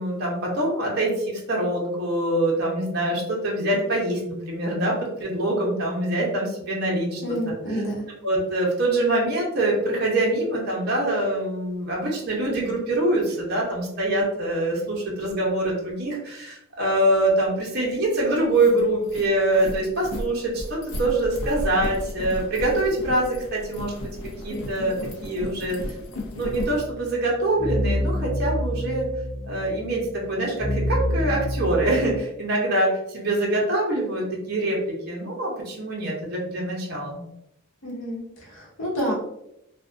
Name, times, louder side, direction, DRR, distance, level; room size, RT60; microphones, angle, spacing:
voice 1, 0.0-7.4 7.7-7.8 8.2-24.1 24.4-25.0 25.2-25.8 26.3-29.1 29.4-37.2, right 1 dB, 50° right, -3 dB, 0.6 m, -24 dB
voice 2, 7.2-8.1 37.8-39.1, equal, 65° left, -2 dB, 0.8 m, -29 dB
sound 1, 17.9-18.0 18.4-26.8, left 1 dB, 85° left, 0.5 m, -34 dB
sound 2, 26.5-32.2, equal, 15° left, 0.6 m, -28 dB
2.5 x 2.1 x 2.4 m, 0.81 s
head